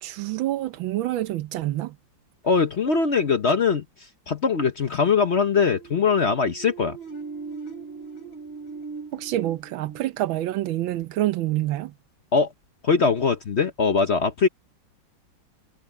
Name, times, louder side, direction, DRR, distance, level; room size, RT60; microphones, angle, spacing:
voice 1, 0.0-2.0 9.1-11.9, right 14 dB, 90° right, 1.5 m, -27 dB
voice 2, 2.4-3.8 4.3-7.0 12.3-12.5 12.8-14.5, left 5 dB, 45° left, 0.9 m, -21 dB
sound 1, 5.4-11.0, right 5 dB, 90° left, 7.5 m, -40 dB
omnidirectional pair, 2.1 m